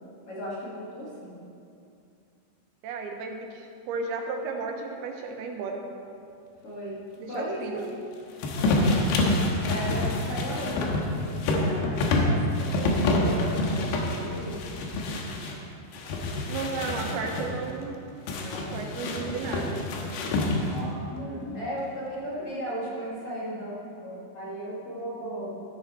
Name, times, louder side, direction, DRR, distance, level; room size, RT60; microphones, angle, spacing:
voice 1, 0.0-1.4 6.6-7.0 7.3-7.9 8.5-8.9 9.6-14.6 17.4-17.6 18.4-19.0 19.9-20.3 20.7-25.6, equal, 45° left, -6 dB, 2.3 m, -36 dB
voice 2, 2.8-5.8 7.2-7.9 16.5-18.0 18.7-19.9 20.4-20.7, right 4 dB, 80° right, 3 dB, 2.9 m, -34 dB
sound 1, 8.4-15.5 15.9-17.5 18.3-20.9, left 2 dB, 90° left, 3.2 m, -27 dB
13.5 x 10.5 x 4.2 m, 2.5 s
omnidirectional pair, 4.6 m